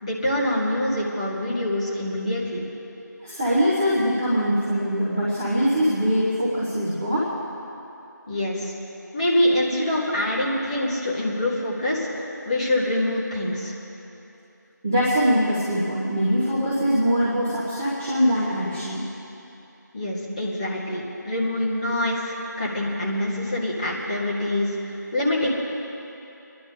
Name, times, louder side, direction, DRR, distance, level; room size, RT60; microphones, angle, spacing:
voice 1, 0.0-2.6 8.3-8.7 9.1-13.8 19.9-25.5, left 1 dB, 20° left, -7 dB, 2.1 m, -25 dB
voice 2, 3.2-7.3 14.8-19.0, equal, 10° right, -10 dB, 0.7 m, -22 dB
26.0 x 11.0 x 3.8 m, 2.9 s
figure-of-eight pair, 175°, 10 cm